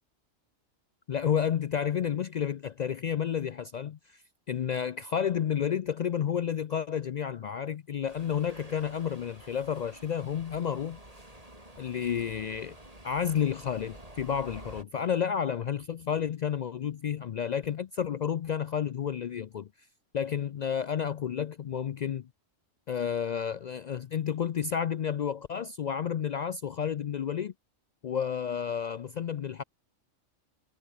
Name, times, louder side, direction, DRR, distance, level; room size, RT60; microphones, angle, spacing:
voice 1, 1.1-4.2 4.5-11.0 11.8-12.7 13.0-19.7 20.1-22.3 22.9-27.5 28.0-29.6, left 8 dB, 80° left, 0.4 m, -31 dB
Subway metro underground, 8.1-14.8, right 1 dB, 30° right, 5.9 m, -49 dB
omnidirectional pair, 1.3 m